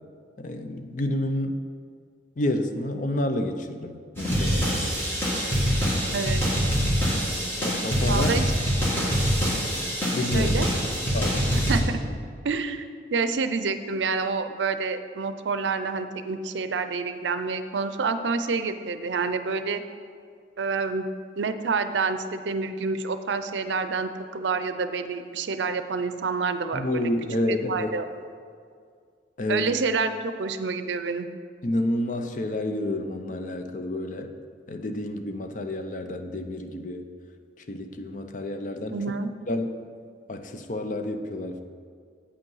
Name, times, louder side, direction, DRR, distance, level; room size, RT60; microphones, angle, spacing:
voice 1, 0.4-1.6 2.4-4.9 7.6-8.3 10.1-10.5 11.1-11.5 26.7-27.9 29.4-29.7 31.6-34.3 34.7-37.1 37.7-39.0 39.5-39.8 40.3-41.6, left 1 dB, 45° left, 7 dB, 0.5 m, -29 dB
sound 1, 4.2-11.8, equal, 15° left, 1.8 m, -24 dB
voice 2, 8.1-8.5 10.3-10.7 11.7-12.0 12.4-12.8 13.1-19.8 20.6-21.1 21.4-27.1 27.5-28.0 29.5-31.3 38.9-39.3, right 4 dB, 80° right, 10 dB, 0.5 m, -28 dB
8.4 x 5.4 x 5.5 m, 2.1 s
head